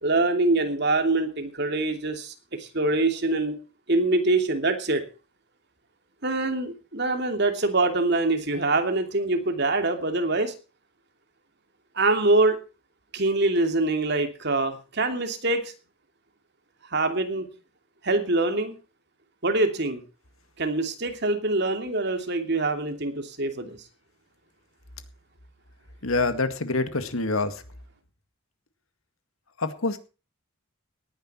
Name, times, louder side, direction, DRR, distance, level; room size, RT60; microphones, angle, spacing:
voice 1, 0.0-3.6 3.9-5.0 6.2-10.5 11.9-12.6 13.1-15.7 16.9-17.5 18.0-18.7 19.4-20.0 20.6-23.8, right 2 dB, 55° right, 6 dB, 2.8 m, -24 dB
voice 2, 26.0-27.6 29.6-30.0, left 3 dB, 80° left, 10 dB, 2.0 m, -26 dB
18.5 x 10.5 x 4.4 m, 0.33 s
head